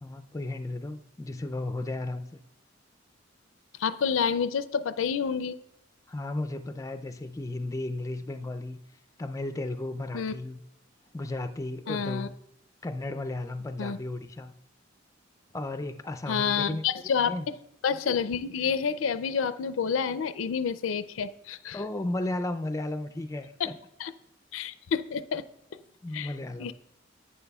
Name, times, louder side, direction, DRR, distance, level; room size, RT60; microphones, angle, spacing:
voice 1, 0.0-2.3 6.1-8.8 9.2-10.6 11.1-12.3 12.8-14.5 15.5-16.8 17.3-17.4 21.7-23.8 26.0-26.7, left 2 dB, 15° left, 8 dB, 0.3 m, -34 dB
voice 2, 3.8-5.6 10.1-10.3 11.9-12.3 13.8-14.0 16.3-17.6 17.8-21.8 23.6-23.7 24.0-24.1 24.5-25.4 26.1-26.3 26.6-26.7, left 6 dB, 85° left, 13 dB, 0.4 m, -29 dB
11.0 x 8.9 x 2.3 m, 0.82 s
head